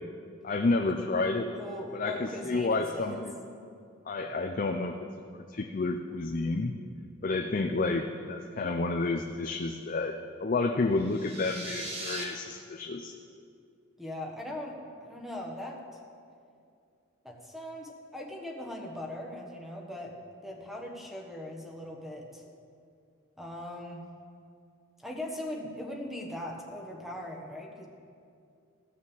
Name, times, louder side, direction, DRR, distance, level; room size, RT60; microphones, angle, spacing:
voice 1, 0.4-1.5 1.9-3.2 4.1-5.0 5.5-6.8 7.2-13.1, left 3 dB, 40° left, 4 dB, 0.5 m, -30 dB
voice 2, 1.5-3.3 14.0-15.8 17.2-22.4 23.4-24.1 25.0-27.9, left 1 dB, ahead, 1 dB, 1.3 m, -40 dB
sound 1, 11.0-12.2, right 2 dB, 30° right, 1.8 m, -39 dB
15.5 x 6.4 x 7.3 m, 2.4 s
head